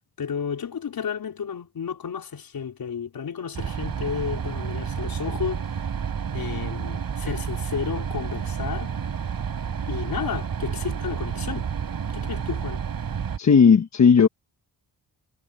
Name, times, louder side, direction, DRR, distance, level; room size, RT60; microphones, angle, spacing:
voice 1, 0.2-5.9 6.3-9.0 9.9-11.7 12.1-12.8, left 7 dB, 55° left, 4.5 m, -32 dB
sound 1, 3.5-13.4, right 7 dB, 55° right, 4.7 m, -30 dB
voice 2, 13.4-14.3, left 6 dB, 40° left, 1.2 m, -15 dB
wide cardioid pair, 135°, 41 cm